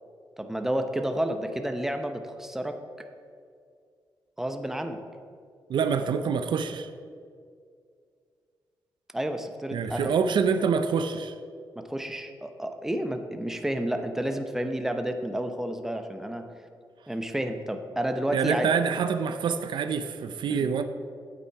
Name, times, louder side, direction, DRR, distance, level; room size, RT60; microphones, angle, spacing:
voice 1, 0.4-2.8 4.4-5.0 9.1-10.1 11.8-16.5 17.1-18.7 20.5-20.7, right 1 dB, 5° right, 6 dB, 0.8 m, -30 dB
voice 2, 5.7-6.9 9.7-11.3 18.3-20.8, right 6 dB, 70° right, 9 dB, 0.5 m, -26 dB
8.7 x 8.5 x 4.6 m, 2.2 s
cardioid pair, 100°, 8 cm